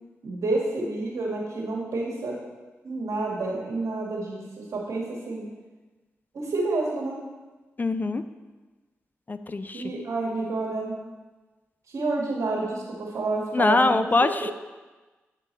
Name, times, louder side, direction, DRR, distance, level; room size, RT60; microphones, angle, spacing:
voice 1, 0.2-2.3 2.8-5.4 6.3-7.2 9.6-10.9 11.9-14.1 14.3-14.5, right 3 dB, 75° right, -3 dB, 1.6 m, -29 dB
voice 2, 7.8-8.2 9.3-9.9 13.5-14.5, left 3 dB, 35° left, 11 dB, 0.4 m, -23 dB
8.0 x 3.8 x 4.1 m, 1.2 s
supercardioid pair, 45°, 5 cm